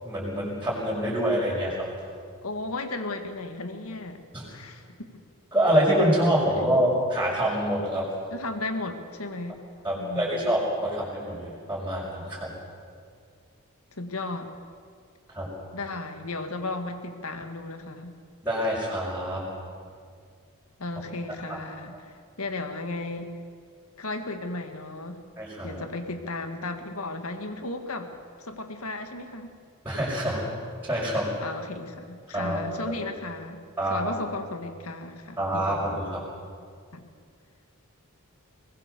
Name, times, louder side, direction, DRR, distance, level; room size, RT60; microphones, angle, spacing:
voice 1, 0.0-1.9 4.3-4.5 5.5-8.0 9.8-12.5 15.3-15.5 18.4-19.4 25.4-25.8 29.8-30.4 30.8-31.3 32.3-32.6 33.8-34.1 35.4-36.2, equal, 10° right, -8 dB, 5.7 m, -26 dB
voice 2, 2.4-4.2 4.5-5.1 8.3-9.6 10.0-10.5 14.0-14.5 15.7-18.1 20.8-23.3 24.0-25.2 25.6-28.1 28.4-29.5 31.4-33.6 33.9-35.7 36.9-37.1, left 2 dB, 75° left, 7 dB, 2.0 m, -35 dB
22.5 x 20.5 x 6.9 m, 2.1 s
head